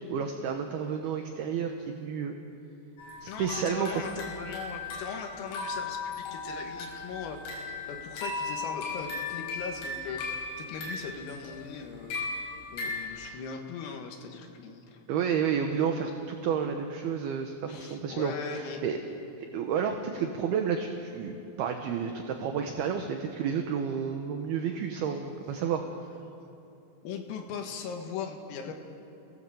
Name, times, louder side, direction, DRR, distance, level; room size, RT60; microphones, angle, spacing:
voice 1, 0.1-2.3 3.2-4.0 15.1-19.0 19.4-25.8, right 7 dB, 70° right, 5 dB, 2.4 m, -31 dB
sound 1, 3.0-13.1, left 3 dB, 70° left, 7.9 m, -37 dB
voice 2, 3.3-12.2 12.7-15.0 15.8-15.9 17.7-18.8 20.1-20.3 27.0-28.7, left 6 dB, 90° left, 3 dB, 4.6 m, -39 dB
29.5 x 18.5 x 7.7 m, 2.7 s
omnidirectional pair, 5.8 m